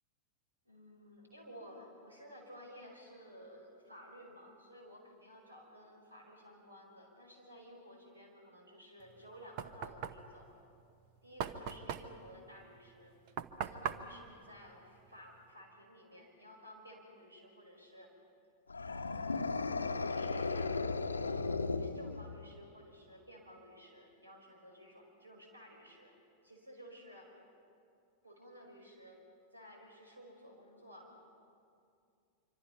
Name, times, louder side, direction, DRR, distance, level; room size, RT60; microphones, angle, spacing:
voice 1, 0.6-10.5 11.2-13.2 13.6-18.1 18.8-21.4 21.7-26.1 26.4-27.3 28.2-29.2 29.5-31.1, equal, 80° right, 1 dB, 5.3 m, -55 dB
Knock, 9.0-15.5, right 8 dB, 45° right, 0.9 m, -43 dB
sound 1, 18.7-22.6, left 3 dB, 80° left, 0.8 m, -36 dB
25.5 x 25.5 x 5.6 m, 2.4 s
figure-of-eight pair, 90°, 0 cm